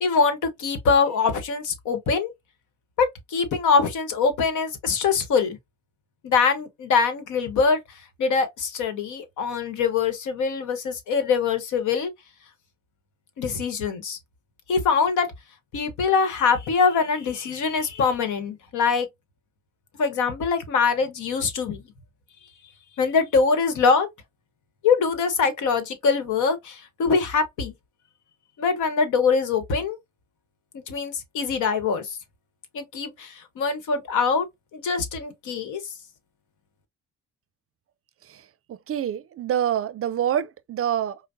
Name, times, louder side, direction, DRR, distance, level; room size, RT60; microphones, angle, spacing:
voice 1, 0.0-2.3 3.0-5.6 6.2-7.8 8.2-12.1 13.4-14.2 14.7-15.3 15.7-19.1 20.0-21.8 23.0-24.1 24.8-27.7 28.6-30.0 30.9-32.1 32.7-34.5 34.7-35.8, left 5 dB, 80° left, 1.1 m, -23 dB
voice 2, 38.7-41.3, right 10 dB, 50° right, 0.5 m, -26 dB
5.0 x 2.1 x 2.6 m
cardioid pair, 90°, 30 cm